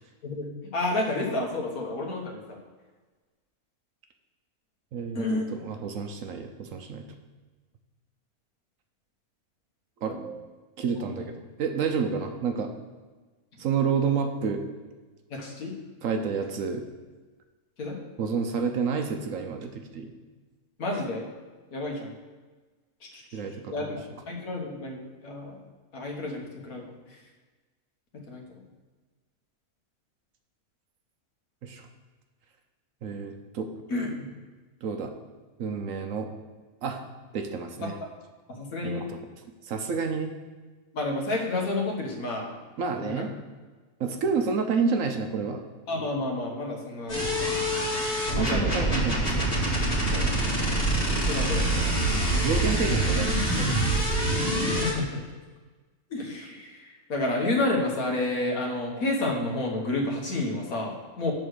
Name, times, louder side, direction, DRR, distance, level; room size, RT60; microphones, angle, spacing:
voice 1, 0.2-2.6 5.2-5.5 11.0-11.3 15.3-15.7 17.8-18.0 20.8-21.3 21.7-22.1 23.3-23.4 23.7-25.6 25.9-26.8 28.3-28.6 33.9-34.3 38.5-39.1 40.9-42.6 43.0-43.3 45.9-47.6 48.3-48.9 50.1-50.4 51.3-51.6 54.6-55.3 56.1-61.3, left 2 dB, 65° left, 0 dB, 1.8 m, -30 dB
voice 2, 4.9-5.2 5.5-7.1 10.0-10.4 10.8-12.7 13.6-14.6 16.0-16.8 18.2-20.1 23.3-23.9 31.6-31.8 33.0-33.7 34.8-35.1 35.6-36.3 36.8-37.0 37.3-37.9 38.8-39.2 39.7-40.3 42.8-43.3 44.0-45.6 48.4-49.5 52.4-53.8, right 5 dB, 65° right, 5 dB, 1.0 m, -29 dB
sound 1, 47.1-54.9, right 1 dB, 40° left, 2.3 m, -25 dB
7.8 x 4.3 x 6.4 m, 1.3 s
omnidirectional pair, 1.6 m